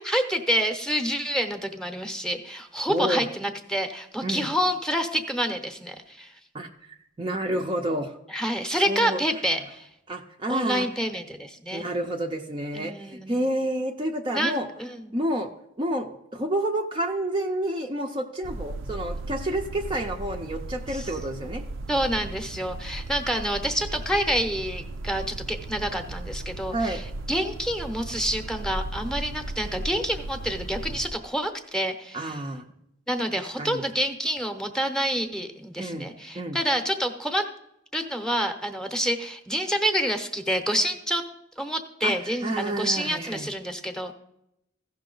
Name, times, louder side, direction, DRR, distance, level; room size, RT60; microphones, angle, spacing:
voice 1, 0.0-6.3 8.3-9.9 10.5-11.8 12.7-13.4 14.3-15.2 20.9-21.1 21.9-32.4 33.1-37.5 37.9-41.2 41.6-44.1, equal, 5° left, 6 dB, 0.8 m, -28 dB
voice 2, 2.9-3.2 4.2-4.5 6.5-8.2 8.9-9.2 10.1-10.9 11.7-14.7 15.1-15.5 15.8-21.6 26.7-27.0 32.1-32.6 33.4-33.8 35.8-36.0 36.3-36.6 42.0-43.5, right 1 dB, 25° right, 2 dB, 0.5 m, -29 dB
sound 1, 18.4-31.1, right 2 dB, 75° right, 0.5 m, -36 dB
15.0 x 5.7 x 3.8 m, 0.80 s
head